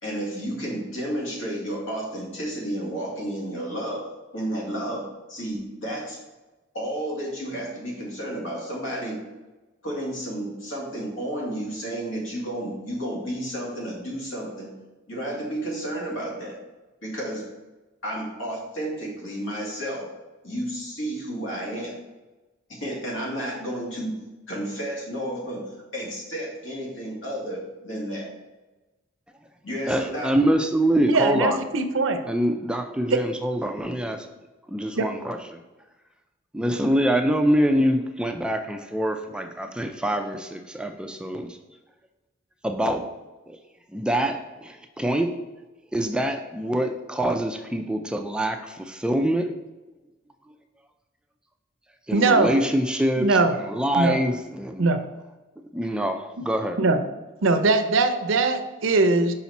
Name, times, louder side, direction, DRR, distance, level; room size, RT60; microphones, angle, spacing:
voice 1, 0.0-4.1 4.3-6.2 6.7-9.2 9.8-14.7 15.1-16.6 17.0-17.5 18.0-20.1 20.4-22.0 22.7-24.2 24.5-25.6 25.9-28.3 29.6-30.3, right 1 dB, 75° left, -2 dB, 2.1 m, -31 dB
voice 2, 29.9-31.6 32.3-34.3 34.7-35.6 36.5-41.6 42.6-43.0 43.5-43.6 43.9-45.4 45.9-49.5 52.1-54.9 55.7-56.8, right 1 dB, 5° right, 5 dB, 0.3 m, -25 dB
voice 3, 31.1-32.2 33.1-33.2 35.0-35.1 52.1-52.5 53.2-53.5 54.0-54.2 54.8-55.0 56.8-57.0 57.4-59.3, right 3 dB, 75° right, 8 dB, 0.6 m, -21 dB
5.8 x 4.9 x 4.1 m, 1.1 s
head